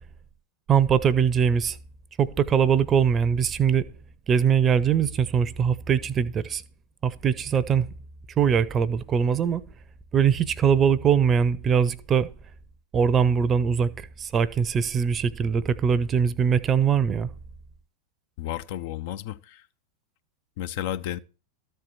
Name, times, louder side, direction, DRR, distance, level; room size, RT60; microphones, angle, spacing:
voice 1, 0.7-1.8 2.2-3.9 4.3-6.6 7.0-7.9 8.4-9.6 10.1-12.3 12.9-17.3, right 7 dB, 25° right, 0.6 m, -22 dB
voice 2, 18.4-19.6 20.6-21.2, left 12 dB, 50° left, 0.5 m, -32 dB
13.5 x 4.6 x 6.8 m
figure-of-eight pair, 90°, 0 cm